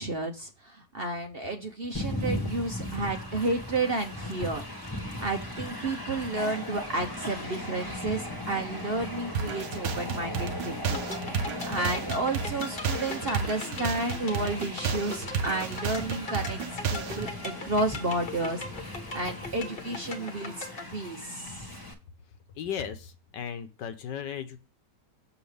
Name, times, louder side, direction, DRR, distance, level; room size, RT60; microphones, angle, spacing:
voice 1, 0.0-4.6 5.2-11.0 11.7-16.6 16.9-21.6, right 2 dB, 40° right, 5 dB, 0.9 m, -31 dB
Train, 1.9-21.9, left 1 dB, 15° left, 1.5 m, -38 dB
sound 1, 9.3-17.3, right 6 dB, 85° right, 1.6 m, -32 dB
sound 2, 10.9-20.9, left 3 dB, 35° left, 1.3 m, -41 dB
voice 2, 22.5-24.6, left 8 dB, 80° left, 9 dB, 1.6 m, -36 dB
7.2 x 6.9 x 3.4 m, 0.32 s
omnidirectional pair, 1.9 m